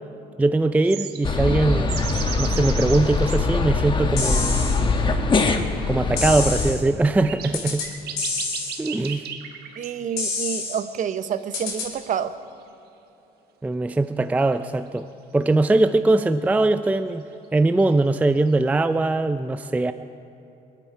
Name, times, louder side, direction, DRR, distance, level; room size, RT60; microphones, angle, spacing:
voice 1, 0.4-2.0 2.4-4.6 5.9-7.8 8.8-9.3 13.6-15.1 15.3-17.2 17.5-19.9, right 2 dB, 10° right, 11 dB, 0.4 m, -21 dB
sound 1, 0.8-3.4 5.2-5.3 6.6-6.7 7.1-10.0 10.3-11.6 12.0-12.1 14.6-14.7 14.9-15.0 17.3-17.8, right 8 dB, 70° right, 1.2 m, -36 dB
sound 2, 1.2-6.7, left 3 dB, 30° left, 1.2 m, -23 dB
sound 3, 4.2-4.8 6.2-6.8 7.5-7.9 8.2-8.8 10.2-10.8 11.5-11.9, left 4 dB, 70° left, 3.4 m, -27 dB
voice 2, 9.8-12.3, right 8 dB, 50° right, 11 dB, 0.8 m, -28 dB
25.5 x 9.1 x 4.5 m, 2.8 s
cardioid pair, 110°, 17 cm